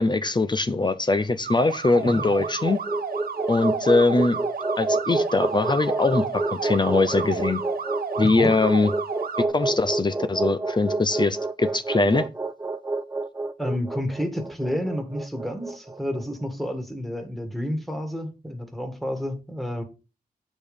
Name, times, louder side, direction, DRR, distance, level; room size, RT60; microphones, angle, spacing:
voice 1, 0.0-2.8 3.5-4.4 4.8-7.6 8.2-8.9 9.5-12.3, left 3 dB, 30° left, 0.6 m, -22 dB
sound 1, 1.4-9.5, right 6 dB, 70° right, 1.0 m, -33 dB
sound 2, 2.0-16.3, right 2 dB, 15° right, 0.5 m, -29 dB
voice 2, 13.6-19.8, equal, ahead, 1.9 m, -30 dB
8.4 x 5.2 x 5.3 m
wide cardioid pair, 105°, 16 cm